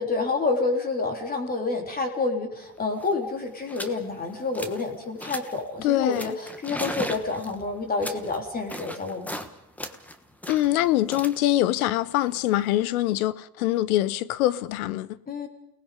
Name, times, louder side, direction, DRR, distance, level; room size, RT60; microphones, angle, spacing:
voice 1, 0.0-9.4 15.3-15.5, left 3 dB, 20° left, 3.9 m, -28 dB
sound 1, 2.6-2.7 2.9-3.2 3.7-4.0 4.3-4.9 5.2-5.6 6.1-9.5 9.8-12.8, equal, 5° left, 1.3 m, -38 dB
voice 2, 5.8-6.3 10.5-15.1, left 14 dB, 65° left, 1.1 m, -24 dB
29.0 x 19.5 x 5.2 m
supercardioid pair, 120°, 46 cm